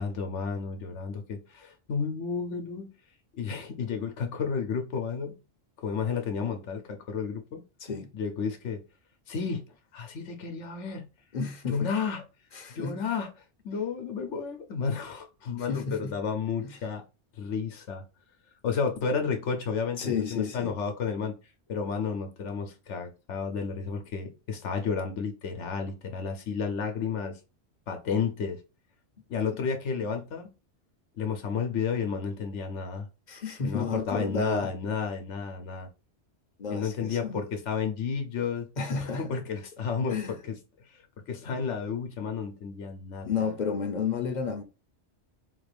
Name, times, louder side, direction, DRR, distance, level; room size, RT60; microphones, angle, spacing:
voice 1, 0.0-2.9 3.4-5.3 5.8-7.6 8.1-8.8 9.3-9.6 9.9-11.1 11.7-12.2 12.7-13.3 13.6-17.0 17.4-18.0 18.6-21.4 21.7-27.4 27.9-28.6 29.3-30.5 31.2-33.1 33.6-35.9 36.7-38.7 39.0-40.6 40.9-43.5, left 5 dB, 80° left, 1.0 m, -32 dB
voice 2, 11.3-11.9 12.5-13.0 15.6-16.1 16.6-16.7 20.0-20.7 33.3-34.7 36.6-37.4 38.8-39.4 40.1-40.4 43.2-44.6, left 5 dB, 45° left, 0.7 m, -31 dB
4.0 x 2.4 x 3.3 m
omnidirectional pair, 1.2 m